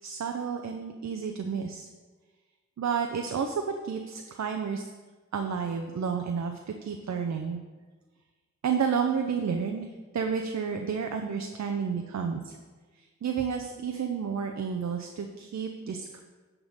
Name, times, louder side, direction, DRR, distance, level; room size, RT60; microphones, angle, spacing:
voice 1, 0.0-1.9 2.8-4.9 5.3-7.6 8.6-12.6 13.0-16.2, right 6 dB, 65° right, 5 dB, 0.7 m, -31 dB
11.0 x 3.7 x 6.5 m, 1.4 s
cardioid pair, 70°, 30 cm